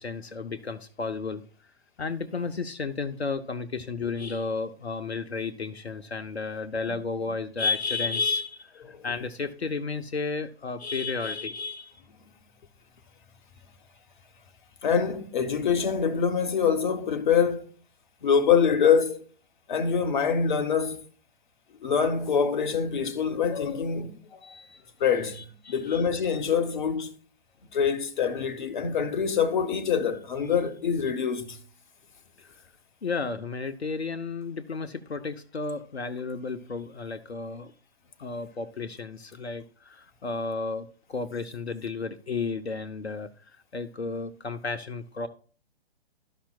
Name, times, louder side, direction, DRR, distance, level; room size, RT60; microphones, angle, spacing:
voice 1, 0.0-1.4 2.0-12.0 24.4-24.8 25.4-26.0 32.4-32.5 33.0-37.7 38.2-43.3 43.7-45.3, left 4 dB, 80° left, 0.8 m, -32 dB
voice 2, 14.8-17.6 18.2-19.2 19.7-21.1 21.8-24.5 25.0-25.4 25.7-27.1 27.7-31.6, left 7 dB, 50° left, 1.1 m, -25 dB
13.0 x 5.7 x 2.3 m
figure-of-eight pair, 130°, 32 cm